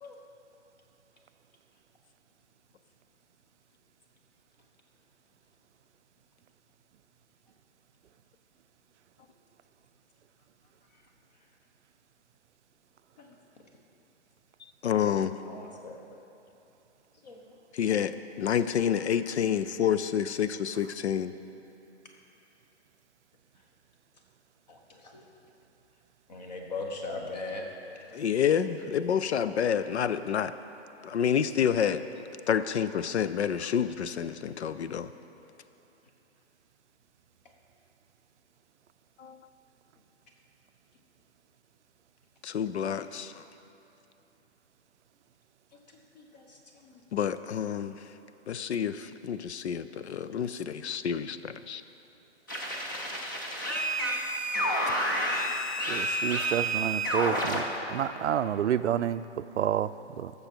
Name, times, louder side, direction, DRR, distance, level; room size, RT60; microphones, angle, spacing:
voice 1, 14.8-15.4 17.7-18.1 18.4-21.3 28.1-30.5 31.0-32.0 32.5-35.1 39.2-39.4 42.4-43.4 47.1-48.0 48.5-51.8, left 8 dB, 75° left, 12 dB, 0.5 m, -28 dB
voice 2, 15.4-16.0 17.2-17.6 24.7-25.3 26.3-27.6 28.1-28.2 29.4-29.5 45.9-47.0, left 3 dB, 40° left, 1 dB, 1.3 m, -41 dB
sound 1, 52.5-57.6, right 1 dB, 20° left, 0.5 m, -29 dB
voice 3, 55.9-60.3, right 10 dB, 90° right, 14 dB, 0.5 m, -29 dB
15.0 x 6.7 x 4.5 m, 2.9 s
hypercardioid pair, 170°, 34 cm